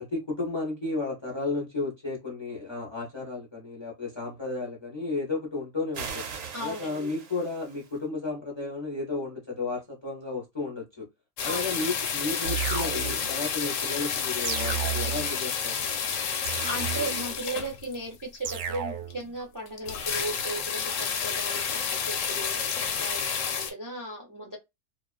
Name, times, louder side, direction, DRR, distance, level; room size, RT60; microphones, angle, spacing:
voice 1, 0.0-6.3 6.6-11.1 11.4-15.9, left 3 dB, 30° left, 0.6 m, -33 dB
sound 1, 5.9-8.0, right 6 dB, 85° right, 1.1 m, -39 dB
voice 2, 6.5-7.1 11.4-11.8 16.6-24.6, right 1 dB, 20° right, 0.5 m, -36 dB
sound 2, 11.4-18.2 18.7-18.8 19.1-19.2 19.4-19.5 19.7-23.7, left 6 dB, 85° left, 1.0 m, -30 dB
sound 3, 12.4-13.3 14.4-15.3 16.4-17.3 18.4-19.3, right 9 dB, 70° right, 0.8 m, -33 dB
2.4 x 2.3 x 2.3 m
omnidirectional pair, 1.3 m